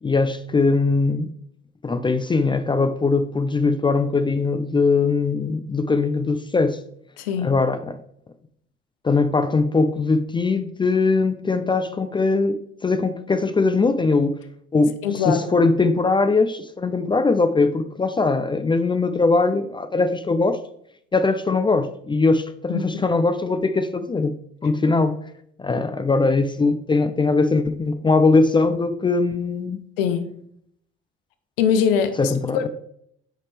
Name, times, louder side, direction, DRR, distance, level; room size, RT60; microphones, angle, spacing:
voice 1, 0.0-1.3 1.8-6.8 7.4-8.0 9.0-14.4 14.7-20.6 21.1-24.4 24.6-25.2 25.6-29.8 32.2-32.7, left 3 dB, 15° left, 0.4 m, -21 dB
voice 2, 7.2-7.5 15.0-15.5 22.7-22.8 30.0-30.3 31.6-32.7, left 7 dB, 75° left, 0.7 m, -22 dB
8.8 x 4.1 x 3.3 m
figure-of-eight pair, 55°, 29 cm